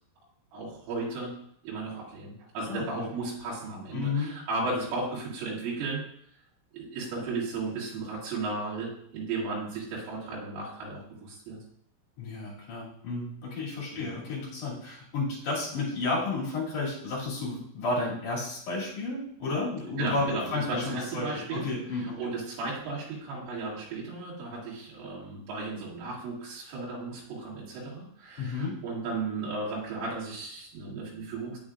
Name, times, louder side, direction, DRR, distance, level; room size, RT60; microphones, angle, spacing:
voice 1, 0.5-1.4 1.6-6.0 6.7-11.6 13.9-14.2 20.0-31.6, right 3 dB, 75° right, -7 dB, 4.7 m, -35 dB
voice 2, 2.7-3.1 3.9-4.3 12.2-22.2 28.4-28.7, left 3 dB, 45° left, -6 dB, 3.4 m, -32 dB
8.7 x 8.5 x 2.5 m, 0.70 s
omnidirectional pair, 5.8 m